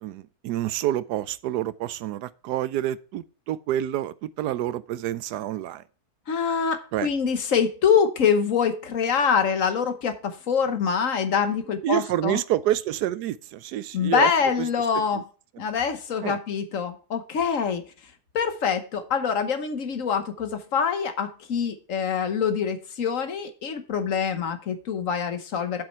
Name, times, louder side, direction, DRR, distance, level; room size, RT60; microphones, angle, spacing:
voice 1, 0.0-5.8 6.9-7.1 11.8-14.3 15.1-15.2 15.6-15.7 16.2-16.4, right 12 dB, 85° right, 1.2 m, -28 dB
voice 2, 6.3-12.4 13.9-15.2 15.6-17.8 18.3-25.8, left 6 dB, 60° left, 1.3 m, -25 dB
7.6 x 7.1 x 4.5 m
omnidirectional pair, 1.7 m